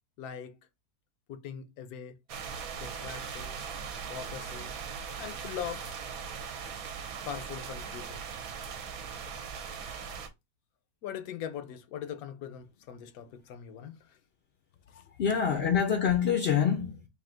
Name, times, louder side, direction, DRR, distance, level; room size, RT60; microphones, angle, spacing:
voice 1, 0.2-0.6 1.3-2.2 2.7-3.6 4.1-4.7 5.2-6.0 7.2-8.2 11.0-14.2 14.9-15.0, left 8 dB, 75° left, 1.1 m, -41 dB
sound 1, 2.3-10.3, right 6 dB, 70° right, 1.1 m, -39 dB
voice 2, 14.9-17.1, left 7 dB, 60° left, 0.7 m, -26 dB
3.6 x 2.7 x 3.7 m
omnidirectional pair, 1.6 m